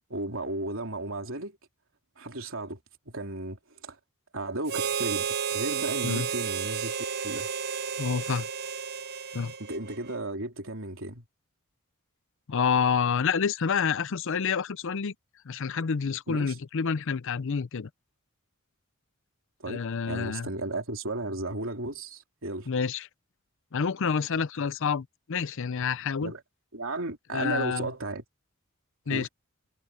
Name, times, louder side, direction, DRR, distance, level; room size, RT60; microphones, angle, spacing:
voice 1, 0.0-1.6 2.2-2.8 3.1-4.0 4.3-6.9 7.2-7.5 9.6-11.2 16.3-16.5 19.6-22.7 26.2-26.4 26.7-28.2 29.1-29.3, right 2 dB, 65° right, 3.8 m, -34 dB
Harmonica, 4.7-10.2, right 7 dB, 50° right, 0.7 m, -32 dB
voice 2, 8.0-8.5 9.3-9.5 12.5-15.1 15.5-17.9 19.7-20.5 22.7-23.1 23.7-26.3 27.3-27.9 29.1-29.3, left 6 dB, 60° left, 0.5 m, -28 dB
head